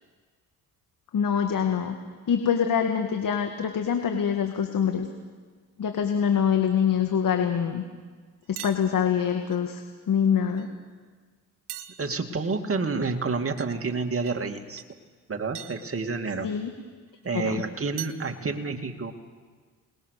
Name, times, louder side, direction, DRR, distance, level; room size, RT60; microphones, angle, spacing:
voice 1, 1.1-2.0 2.3-5.1 5.8-7.8 8.5-9.8 10.1-10.7 16.4-16.7 17.4-17.6, left 7 dB, 55° left, 5 dB, 2.1 m, -24 dB
sound 1, 8.6-8.9 9.5-9.6 10.6-10.7 11.7-12.4 13.6-13.7 14.2-14.4 14.8-14.9 15.6-15.8 17.2-17.3 18.0-18.3, right 13 dB, 75° right, 1.4 m, -40 dB
voice 2, 12.0-14.8 15.3-16.5 17.2-19.1, right 4 dB, 35° right, 4 dB, 2.5 m, -29 dB
28.5 x 20.5 x 6.8 m, 1.5 s
supercardioid pair, 65°, 40 cm